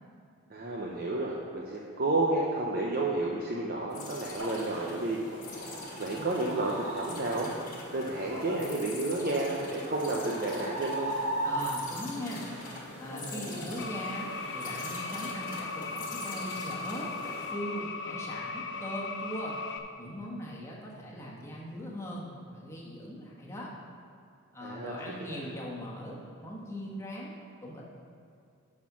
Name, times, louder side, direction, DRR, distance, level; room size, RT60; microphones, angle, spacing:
voice 1, 0.5-5.2 5.5-5.7 6.0-7.5 7.9-11.1 24.6-24.9 25.3-25.4, right 2 dB, 45° right, -3 dB, 0.8 m, -31 dB
sound 1, 3.9-17.5, left 2 dB, 40° left, 1.5 m, -44 dB
sound 2, 4.4-12.1 12.4-15.4, right 1 dB, 75° right, 1.7 m, -39 dB
voice 2, 11.4-12.4 13.0-17.1 17.5-19.6 20.0-23.7 24.5-27.8, equal, 15° left, -5 dB, 1.5 m, -40 dB
sound 3, 13.8-19.8, left 4 dB, 55° left, 0.7 m, -38 dB
11.5 x 4.4 x 6.1 m, 2.4 s
head